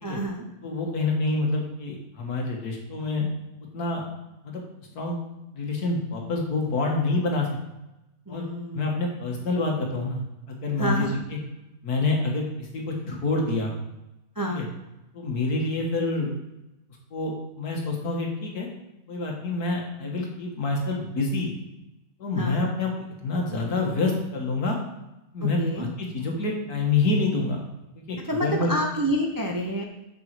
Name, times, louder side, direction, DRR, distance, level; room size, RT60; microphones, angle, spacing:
voice 1, 0.0-0.5 8.3-8.9 10.8-11.2 14.4-14.7 22.4-22.7 25.6-25.9 28.2-29.8, equal, 30° right, 1 dB, 0.3 m, -28 dB
voice 2, 0.6-3.3 3.7-4.0 4.4-4.6 5.0-5.2 5.5-7.5 8.3-8.5 8.7-10.2 10.5-11.1 11.8-13.7 14.5-14.7 15.1-16.3 17.1-18.7 19.1-21.5 22.2-24.8 25.3-27.6 28.0-28.7, left 3 dB, 65° left, 0 dB, 2.0 m, -27 dB
7.0 x 6.4 x 4.6 m, 0.96 s
omnidirectional pair, 1.7 m